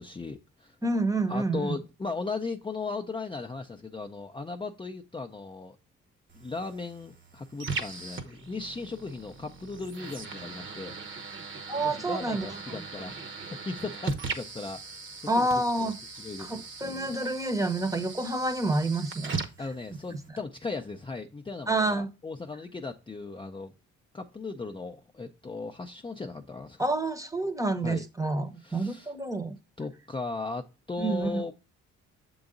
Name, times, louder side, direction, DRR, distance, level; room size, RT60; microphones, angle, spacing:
voice 1, 0.0-0.8 1.3-5.8 6.3-13.3 13.7-15.5 15.8-15.9 16.2-17.2 19.6-23.7 24.1-26.8 27.8-28.0 28.6-29.1 29.8-31.5, left 3 dB, 15° left, 0.5 m, -37 dB
voice 2, 0.8-1.8 11.7-12.5 15.3-16.0 16.4-19.3 21.7-22.1 26.8-29.6 31.0-31.4, right 2 dB, 10° right, 0.9 m, -28 dB
sound 1, 6.3-20.3, right 4 dB, 40° right, 1.0 m, -39 dB
7.0 x 3.9 x 3.8 m
cardioid pair, 90°, 30 cm